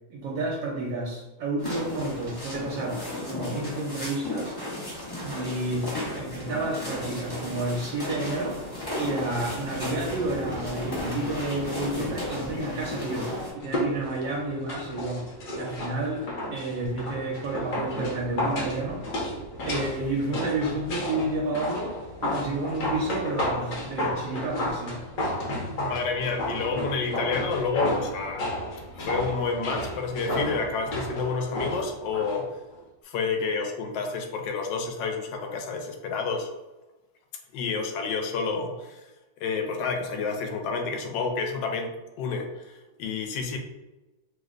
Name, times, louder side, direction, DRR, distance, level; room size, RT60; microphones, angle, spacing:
voice 1, 0.1-4.6 5.2-5.9 6.1-15.2 15.6-16.3 16.5-19.0 19.6-21.9 22.2-25.0, right 2 dB, 80° right, -2 dB, 1.4 m, -30 dB
sound 1, 1.6-13.5, left 1 dB, 35° left, 0.3 m, -34 dB
sound 2, 13.6-32.4 32.7-32.8, left 1 dB, 55° left, 1.0 m, -32 dB
voice 2, 25.8-28.5 29.1-32.5 33.0-36.5 37.5-39.1 39.4-41.9 42.2-43.6, left 4 dB, 80° left, 4 dB, 1.2 m, -29 dB
3.2 x 2.1 x 3.6 m, 1.1 s
omnidirectional pair, 2.0 m